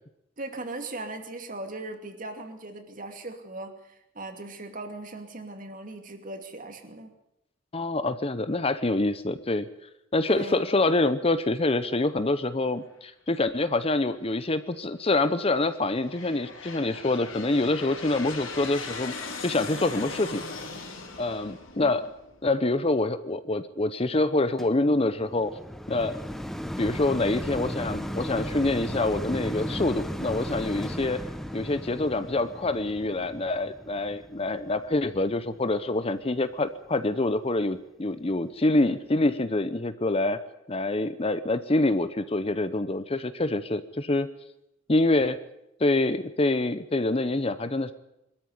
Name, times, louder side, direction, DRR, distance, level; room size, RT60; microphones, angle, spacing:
voice 1, 0.4-7.1 10.3-10.6 21.8-21.9, right 2 dB, 40° right, 6 dB, 2.5 m, -39 dB
voice 2, 7.7-9.7 10.1-19.1 19.4-20.4 21.2-22.1 22.4-25.5 25.9-26.2 26.8-31.2 31.5-40.4 40.7-44.3 44.9-45.4 45.8-47.9, left 2 dB, 30° left, 13 dB, 0.8 m, -26 dB
Aircraft, 13.8-14.4 15.1-22.6, left 4 dB, 80° left, 3.9 m, -39 dB
sound 1, 24.6-35.9 36.5-36.6, equal, ahead, 1.0 m, -36 dB
22.0 x 13.5 x 9.6 m, 0.83 s
head